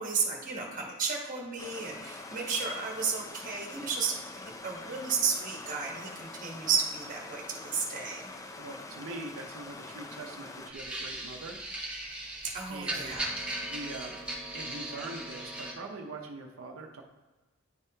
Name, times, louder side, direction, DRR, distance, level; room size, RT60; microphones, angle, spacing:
voice 1, 0.0-8.3 12.5-13.4, right 5 dB, 40° right, -1 dB, 1.2 m, -33 dB
Stream, 1.6-10.7, left 3 dB, 15° left, 0.3 m, -45 dB
voice 2, 8.6-11.6 12.7-13.1 13.6-14.2 14.5-17.0, right 2 dB, 90° right, 1 dB, 0.6 m, -42 dB
sound 1, 10.7-15.7, right 1 dB, 5° right, 0.8 m, -38 dB
9.8 x 3.5 x 2.7 m, 1.2 s
head